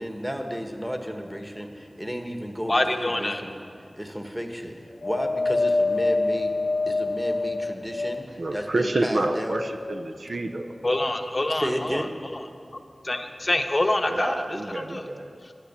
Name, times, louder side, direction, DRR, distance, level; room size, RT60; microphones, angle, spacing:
voice 1, 0.0-3.6 3.9-4.7 5.0-6.5 6.9-9.6 11.5-12.1, equal, 10° right, 4 dB, 1.3 m, -33 dB
voice 2, 2.7-3.4 10.8-12.4 12.7-15.1 15.4-15.5, left 1 dB, 35° left, 6 dB, 0.8 m, -26 dB
Wind, 5.0-8.5 9.1-10.1 10.9-11.0, left 2 dB, 65° left, 0.4 m, -26 dB
voice 3, 8.4-10.7 14.1-15.3, right 2 dB, 70° right, 5 dB, 0.7 m, -28 dB
12.0 x 10.0 x 6.8 m, 2.3 s
wide cardioid pair, 65°, 0 cm